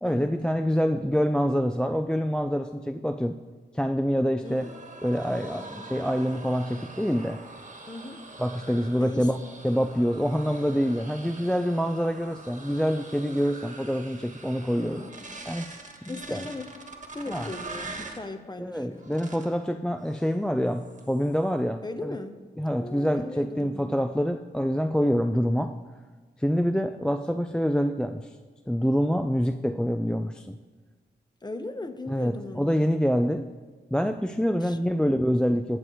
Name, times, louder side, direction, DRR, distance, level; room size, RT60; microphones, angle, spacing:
voice 1, 0.0-3.4 3.7-4.7 5.0-7.4 8.4-9.4 9.6-15.0 15.5-15.7 16.0-16.5 17.3-17.5 18.6-22.2 22.6-25.7 26.4-28.3 28.7-30.6 32.1-33.5 33.9-35.8, equal, 5° left, 7 dB, 0.4 m, -26 dB
sound 1, 4.4-18.3 19.0-19.6 20.0-20.4 20.7-21.4, right 3 dB, 45° right, 1.4 m, -44 dB
voice 2, 5.5-5.9 7.9-8.2 9.0-9.3 14.8-15.4 16.1-16.7 17.1-19.2 21.8-22.4 22.8-24.0 31.4-32.8 34.6-34.8, left 2 dB, 25° left, 8 dB, 0.8 m, -38 dB
19.0 x 7.9 x 3.1 m, 1.4 s
wide cardioid pair, 80°, 18 cm